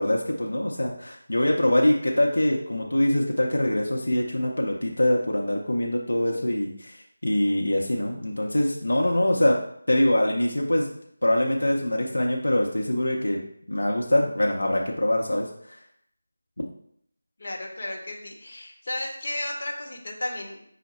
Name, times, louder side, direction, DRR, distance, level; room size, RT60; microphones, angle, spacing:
voice 1, 0.0-7.0 7.2-9.6 9.9-10.9 11.2-13.4 13.7-15.8, left 1 dB, 80° left, -1 dB, 0.7 m, -24 dB
voice 2, 17.4-20.6, left 1 dB, 50° left, 0 dB, 0.9 m, -33 dB
5.6 x 2.1 x 4.2 m, 0.68 s
figure-of-eight pair, 165°, 0 cm